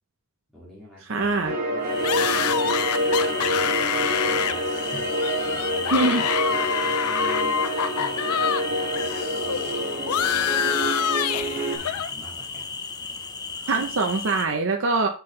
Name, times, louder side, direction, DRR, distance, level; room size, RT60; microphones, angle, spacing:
voice 1, 0.5-7.6 7.9-11.0 11.3-13.2, left 1 dB, ahead, -8 dB, 2.3 m, -45 dB
voice 2, 1.1-1.5 5.9-6.2 13.7-15.1, right 3 dB, 60° right, 3 dB, 0.7 m, -23 dB
sound 1, 1.4-11.8, right 1 dB, 40° right, 1.4 m, -27 dB
sound 2, 1.8-14.5, left 4 dB, 20° left, 0.5 m, -34 dB
sound 3, 2.0-8.6 8.9-12.1, left 9 dB, 85° left, 0.4 m, -27 dB
6.1 x 5.8 x 3.2 m, 0.36 s
head